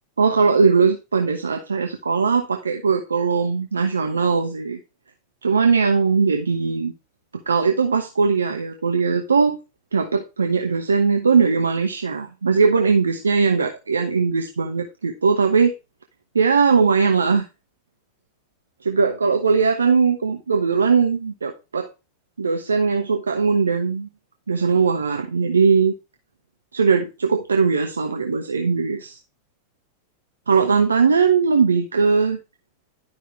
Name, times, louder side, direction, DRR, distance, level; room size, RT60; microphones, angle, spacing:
voice 1, 0.2-4.8 5.4-6.9 7.3-9.6 9.9-15.7 16.3-17.5 18.8-21.9 22.4-24.1 24.5-25.9 26.7-29.2 30.5-32.4, right 5 dB, 75° right, 4 dB, 1.0 m, -19 dB
12.0 x 5.7 x 3.3 m, 0.27 s
figure-of-eight pair, 90°, 0 cm